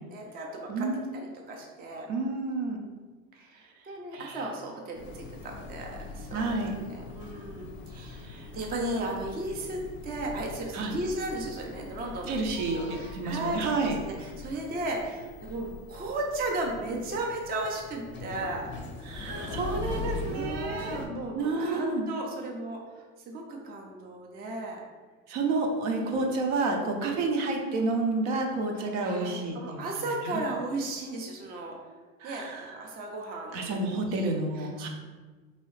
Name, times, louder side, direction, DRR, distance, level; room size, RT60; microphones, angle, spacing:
voice 1, 0.1-2.1 3.3-8.3 8.5-18.7 20.2-24.8 26.0-26.2 27.0-27.2 28.8-31.7 32.2-33.7 34.0-34.9, right 2 dB, 20° right, 0 dB, 0.5 m, -35 dB
voice 2, 0.7-1.1 2.1-2.8 4.1-4.4 6.3-6.7 8.2-8.5 10.7-11.0 12.3-14.0 19.1-21.0 21.3-22.1 25.3-30.4 32.2-32.8 33.5-34.9, right 3 dB, 60° right, 2 dB, 0.7 m, -30 dB
sound 1, 4.9-21.1, left 3 dB, 25° left, 0.6 m, -41 dB
3.0 x 2.8 x 3.2 m, 1.4 s
hypercardioid pair, 90°, 43 cm